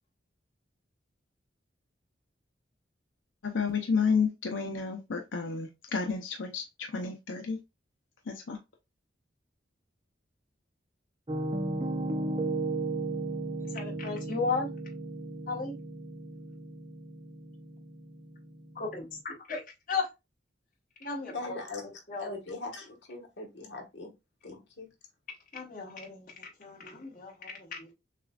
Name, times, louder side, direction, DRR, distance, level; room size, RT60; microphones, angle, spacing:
voice 1, 3.4-7.6 8.3-8.6, left 5 dB, 90° left, 0.7 m, -31 dB
Piano, 11.3-19.1, right 2 dB, 25° right, 0.6 m, -35 dB
voice 2, 13.7-14.7 15.5-15.8 18.7-19.6 19.9-20.1 21.0-21.6 22.1-22.4 25.5-27.9, left 4 dB, 45° left, 1.5 m, -35 dB
voice 3, 21.3-24.1 24.4-24.9, left 3 dB, 70° left, 1.5 m, -41 dB
6.6 x 2.4 x 2.4 m
head